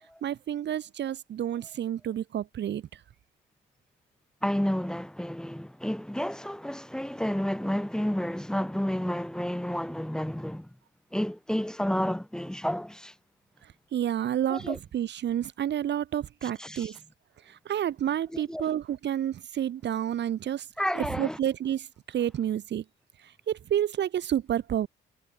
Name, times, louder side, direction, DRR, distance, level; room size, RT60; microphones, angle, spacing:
voice 1, 0.2-3.0 13.6-17.0 17.4-20.7 20.9-22.8 23.2-24.9, right 10 dB, 60° right, 1.3 m, -30 dB
voice 2, 4.4-10.7 11.1-13.1 14.5-14.8 16.6-16.9 18.3-18.6 20.8-21.4, equal, 5° left, 2.0 m, -30 dB
cardioid pair, 90°, 20 cm